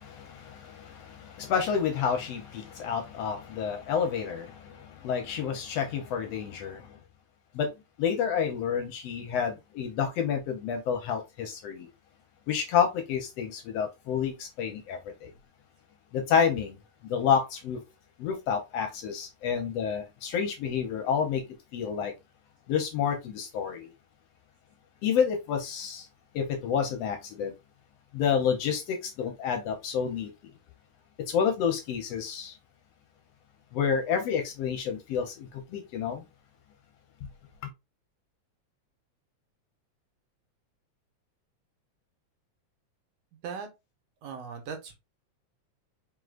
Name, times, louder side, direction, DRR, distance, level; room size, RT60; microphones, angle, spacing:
voice 1, 0.0-7.0 7.5-7.7 8.0-11.9 12.5-15.3 16.1-16.8 17.0-17.8 18.2-21.4 21.7-22.1 22.7-23.9 25.0-26.1 26.3-27.5 28.1-30.5 31.2-32.6 33.7-36.2, left 7 dB, 70° left, 1.7 m, -29 dB
voice 2, 44.2-45.0, right 6 dB, 70° right, 1.9 m, -38 dB
4.8 x 3.7 x 2.4 m
omnidirectional pair, 3.3 m